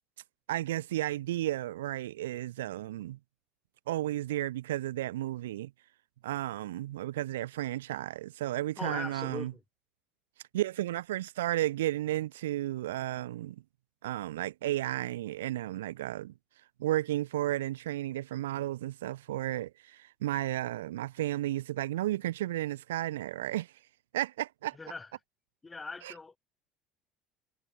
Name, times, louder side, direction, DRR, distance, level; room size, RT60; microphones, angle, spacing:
voice 1, 0.5-3.2 3.9-5.7 6.2-9.5 10.5-13.6 14.0-16.3 16.8-23.7 24.1-24.8 26.0-26.3, right 14 dB, 85° right, 2.2 m, -33 dB
voice 2, 8.8-9.6 24.7-25.1 25.6-26.4, left 3 dB, 20° left, 7.9 m, -40 dB
hypercardioid pair, 70°, 0 cm